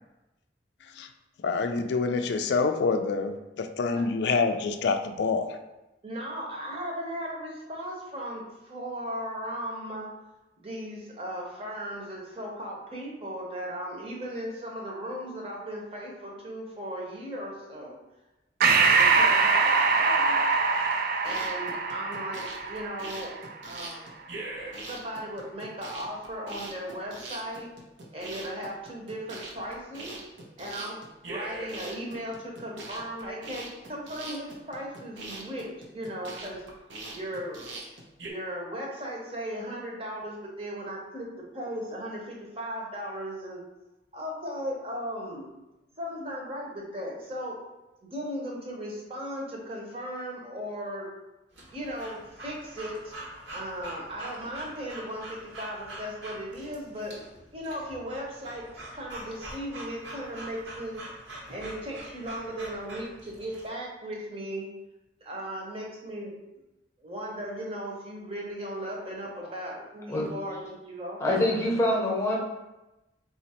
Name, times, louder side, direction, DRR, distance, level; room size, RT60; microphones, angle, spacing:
voice 1, 1.4-5.5, left 4 dB, 65° left, 7 dB, 0.3 m, -26 dB
voice 2, 6.0-10.1 10.6-17.9 18.6-20.4 21.2-23.3 23.6-24.3 24.8-27.7 28.1-30.2 30.6-36.6 37.1-37.8 38.3-43.6 44.1-45.5 46.0-47.6 48.0-51.1 51.7-53.1 53.5-57.1 57.5-58.7 58.9-61.0 61.5-64.7 65.2-66.3 67.0-71.2, equal, 30° right, -2 dB, 0.8 m, -37 dB
Breathing, 18.6-23.5, right 4 dB, 50° right, 0.3 m, -23 dB
sound 1, 21.1-38.3, right 2 dB, 90° right, 0.8 m, -42 dB
Breathing / Dog, 51.5-63.7, right 1 dB, 75° right, 1.2 m, -44 dB
voice 3, 71.2-72.4, left 1 dB, 15° left, -3 dB, 0.8 m, -25 dB
4.1 x 2.5 x 4.1 m, 0.99 s
head